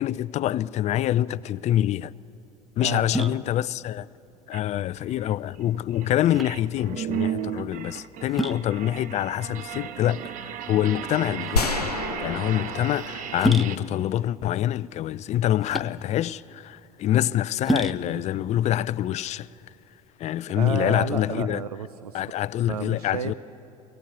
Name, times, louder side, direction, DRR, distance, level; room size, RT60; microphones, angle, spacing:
voice 1, 0.0-2.1 2.8-4.1 4.5-19.5 20.2-21.6 22.1-23.3, left 12 dB, 35° left, 0.5 m, -26 dB
sound 1, 1.5-20.1, right 1 dB, ahead, 0.9 m, -34 dB
voice 2, 2.8-3.4 20.6-22.2 22.7-23.3, right 7 dB, 80° right, 0.6 m, -32 dB
sound 2, 4.5-4.6 5.1-13.8, right 10 dB, 45° right, 0.9 m, -34 dB
sound 3, 11.6-14.5, left 4 dB, 85° left, 0.7 m, -31 dB
23.5 x 19.0 x 8.4 m
figure-of-eight pair, 65°, 19 cm